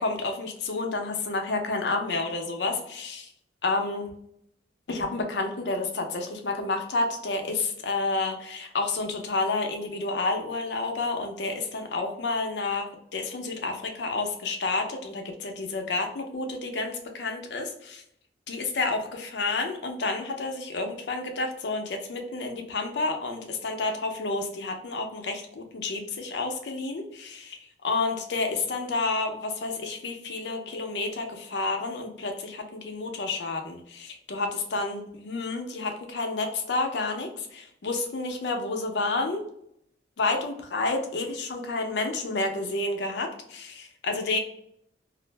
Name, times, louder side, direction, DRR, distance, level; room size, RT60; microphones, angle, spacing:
voice 1, 0.0-3.3 3.6-4.1 4.9-12.9 13.1-18.0 18.5-39.4 40.2-44.4, left 3 dB, 70° left, 4 dB, 0.5 m, -30 dB
2.4 x 2.0 x 3.1 m, 0.72 s
head